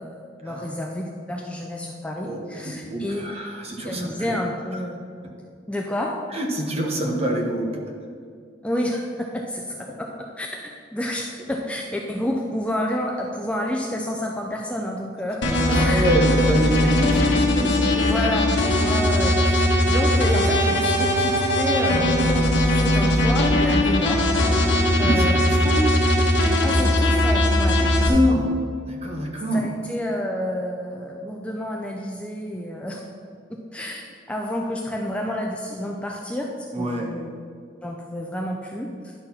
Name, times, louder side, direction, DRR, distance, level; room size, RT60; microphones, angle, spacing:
voice 1, 0.0-3.2 3.8-5.0 5.7-6.2 8.6-10.1 10.4-15.4 15.7-16.0 17.9-18.5 18.8-24.2 24.9-25.4 26.6-27.8 28.0-28.2 29.5-33.1 33.5-37.3 37.8-39.1, left 1 dB, 5° left, 0 dB, 0.5 m, -29 dB
voice 2, 2.6-4.4 6.3-7.8 15.7-18.3 24.9-25.8 27.8-28.5 28.8-29.7 36.7-37.1, equal, 30° right, 0 dB, 1.1 m, -25 dB
sound 1, 15.4-28.1, left 1 dB, 65° left, 1.2 m, -20 dB
10.5 x 4.4 x 5.7 m, 2.2 s
head